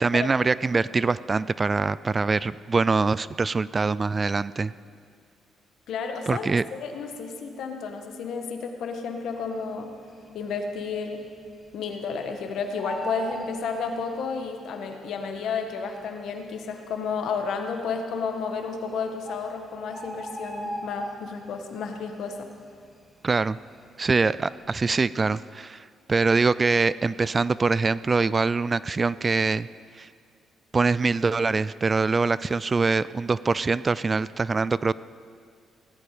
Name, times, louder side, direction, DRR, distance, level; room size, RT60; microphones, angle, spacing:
voice 1, 0.0-4.7 6.3-6.6 23.2-23.6 24.0-29.7 29.9-30.1 30.7-34.9, right 4 dB, 30° right, 18 dB, 0.3 m, -24 dB
voice 2, 5.9-6.5 6.8-9.9 10.3-11.2 11.7-22.5, left 5 dB, 75° left, 4 dB, 1.7 m, -32 dB
Bird, 9.9-10.4 10.8-10.9 11.1-12.3 12.6-14.4 15.3-15.4 16.0-16.1 16.3-16.4 17.1-17.5 18.5-18.6 18.9-19.0 19.3-21.5 21.9-22.2 22.5-23.9 24.2-24.5, right 1 dB, 10° right, 2.3 m, -38 dB
17.5 x 14.5 x 5.1 m, 2.2 s
cardioid pair, 90°, 0 cm